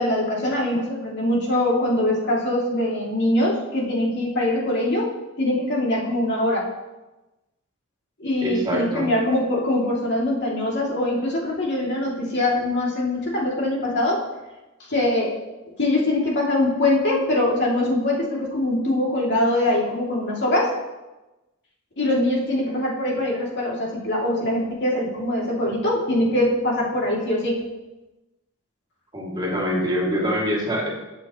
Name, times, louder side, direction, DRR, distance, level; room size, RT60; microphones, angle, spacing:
voice 1, 0.0-5.1 5.4-6.7 8.2-14.2 14.9-15.4 15.8-20.7 22.0-27.6, left 1 dB, 55° left, -4 dB, 2.9 m, -23 dB
voice 2, 8.4-9.1 29.1-30.9, equal, 20° right, -4 dB, 2.7 m, -24 dB
20.0 x 8.1 x 3.2 m, 1.1 s
head